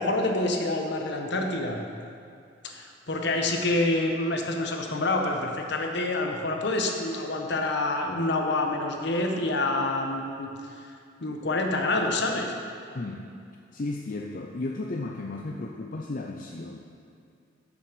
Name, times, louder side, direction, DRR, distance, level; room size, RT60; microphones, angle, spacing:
voice 1, 0.0-1.8 2.6-10.5 11.2-12.5, left 2 dB, 65° left, 3 dB, 1.1 m, -27 dB
voice 2, 12.9-13.3 13.7-16.9, left 2 dB, 45° left, 1 dB, 0.5 m, -34 dB
7.4 x 7.1 x 6.7 m, 2.4 s
head